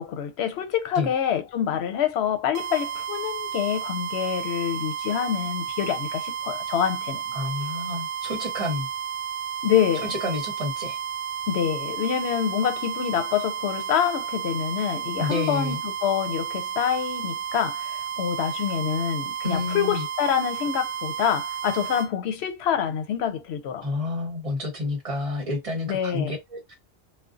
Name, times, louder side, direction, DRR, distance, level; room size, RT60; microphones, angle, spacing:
voice 1, 0.0-7.3 9.6-10.1 11.5-23.9 25.9-26.3, left 9 dB, 80° left, 0.8 m, -26 dB
sound 1, 2.5-22.1, right 8 dB, 70° right, 0.7 m, -32 dB
voice 2, 7.3-8.9 10.2-11.0 15.2-15.8 19.4-20.0 23.8-26.7, left 2 dB, 35° right, 0.9 m, -29 dB
2.5 x 2.2 x 2.4 m
omnidirectional pair, 1.1 m